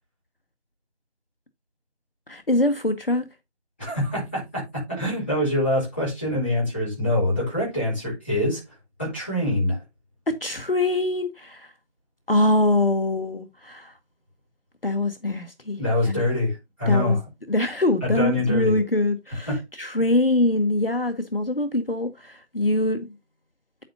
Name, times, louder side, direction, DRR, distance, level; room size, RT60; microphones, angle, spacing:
voice 1, 2.3-3.3 10.3-11.7 12.3-13.9 14.8-15.8 16.0-16.2 16.9-17.2 17.5-19.5 19.8-23.1, left 2 dB, 55° left, 1.1 m, -23 dB
voice 2, 3.8-9.8 15.8-17.2 18.0-18.7 19.5-19.6, left 1 dB, 10° left, 3.6 m, -25 dB
8.8 x 7.7 x 2.7 m
figure-of-eight pair, 170°, 34 cm